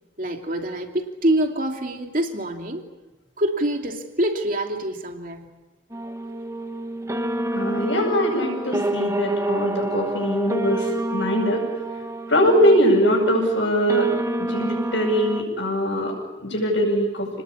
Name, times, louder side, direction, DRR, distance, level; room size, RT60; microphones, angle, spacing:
voice 1, 0.2-2.9 3.4-5.5, right 1 dB, 45° right, 3 dB, 2.8 m, -25 dB
sound 1, 5.9-15.4, right 1 dB, 15° right, 1.4 m, -28 dB
voice 2, 7.5-11.6 12.3-16.1 16.4-17.3, equal, 70° left, -5 dB, 7.4 m, -21 dB
29.5 x 20.0 x 8.5 m, 1.1 s
head